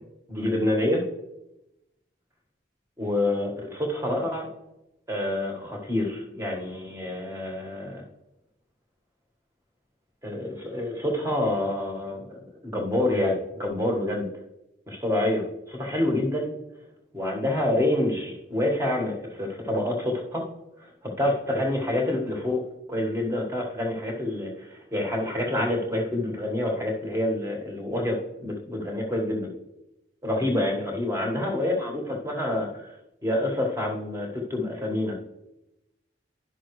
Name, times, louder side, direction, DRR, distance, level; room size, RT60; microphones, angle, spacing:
voice 1, 0.3-1.0 3.0-4.5 5.1-8.0 10.2-14.3 14.9-16.5 17.1-20.4 21.2-22.6 22.9-29.5 30.2-32.9 33.2-35.2, left 1 dB, 15° right, 0 dB, 1.5 m, -27 dB
10.5 x 6.0 x 3.2 m, 0.90 s
head